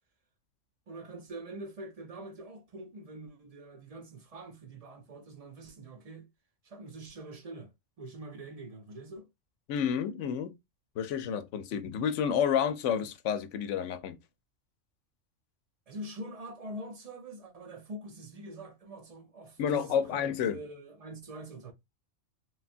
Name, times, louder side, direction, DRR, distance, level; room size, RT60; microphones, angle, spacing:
voice 1, 0.9-6.3 6.6-7.7 8.0-9.3 15.9-19.9 20.5-21.7, right 1 dB, 45° right, 0.5 m, -44 dB
voice 2, 9.7-10.5 11.0-14.2 19.6-20.6, left 8 dB, 75° left, 0.9 m, -30 dB
3.4 x 2.3 x 2.5 m
omnidirectional pair, 1.3 m